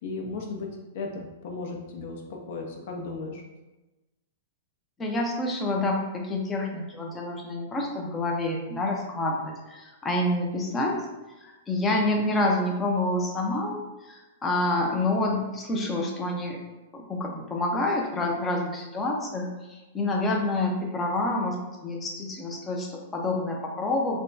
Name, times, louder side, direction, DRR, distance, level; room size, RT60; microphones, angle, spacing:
voice 1, 0.0-3.4, left 3 dB, 55° left, 1 dB, 0.8 m, -36 dB
voice 2, 5.0-11.0 11.4-16.6 16.9-21.6 21.8-24.2, left 2 dB, 15° left, 0 dB, 0.6 m, -28 dB
3.4 x 2.3 x 3.9 m, 1.1 s
hypercardioid pair, 150°, 0 cm